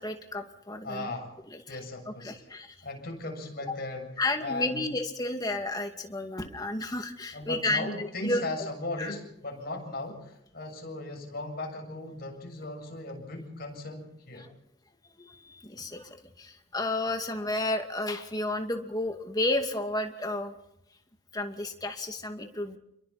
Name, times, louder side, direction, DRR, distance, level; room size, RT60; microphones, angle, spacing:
voice 1, 0.0-1.1 1.7-1.8 2.2-2.8 4.2-7.9 8.2-8.4 9.0-9.1 15.2-20.5 21.3-22.8, left 2 dB, 20° left, 4 dB, 2.4 m, -32 dB
voice 2, 0.8-1.3 1.7-2.5 2.8-4.1 4.4-4.9 7.3-14.5, left 2 dB, 50° left, 1 dB, 7.4 m, -37 dB
29.5 x 22.5 x 4.3 m, 0.81 s
head